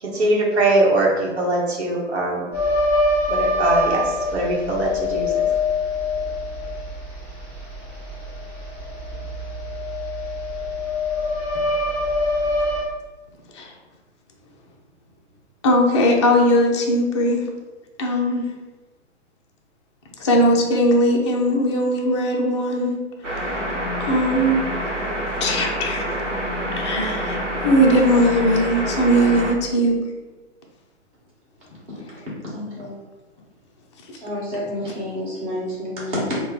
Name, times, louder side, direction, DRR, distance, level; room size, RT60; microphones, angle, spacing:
voice 1, 0.0-2.4 3.3-4.0 4.3-5.3, right 2 dB, 60° right, -3 dB, 1.0 m, -21 dB
sound 1, 2.5-12.8, left 2 dB, 5° right, 1.2 m, -24 dB
voice 2, 15.6-17.4 18.0-18.5 20.2-23.7 24.0-24.6 25.4-26.1 26.7-30.0 34.1-34.2, equal, 25° left, 0 dB, 0.3 m, -19 dB
sound 2, 23.2-29.5, equal, 85° right, 0.9 m, -27 dB
voice 3, 32.5-33.0 34.2-36.4, left 1 dB, 30° right, -6 dB, 1.4 m, -29 dB
3.1 x 2.1 x 3.8 m, 1.2 s
figure-of-eight pair, 115°, 36 cm